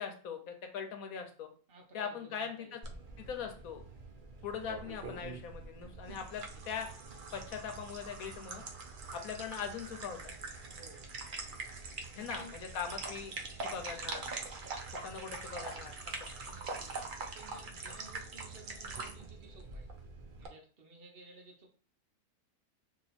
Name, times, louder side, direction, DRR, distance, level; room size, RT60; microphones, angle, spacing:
voice 1, 0.0-1.5 1.9-2.8 3.2-3.8 4.4-6.9 7.3-8.6 9.1-10.2 12.2-12.4 12.7-13.3 13.6-14.3 14.9-16.3, left 7 dB, 70° left, 5 dB, 1.1 m, -41 dB
voice 2, 1.7-2.7 6.1-6.6 10.7-11.1 12.1-12.5 13.5-13.9 16.4-19.9 20.4-21.7, right 2 dB, 45° right, 1 dB, 0.9 m, -56 dB
sound 1, 2.8-20.5, right 3 dB, 85° right, 0.4 m, -44 dB
2.9 x 2.8 x 4.1 m, 0.41 s
omnidirectional pair, 1.6 m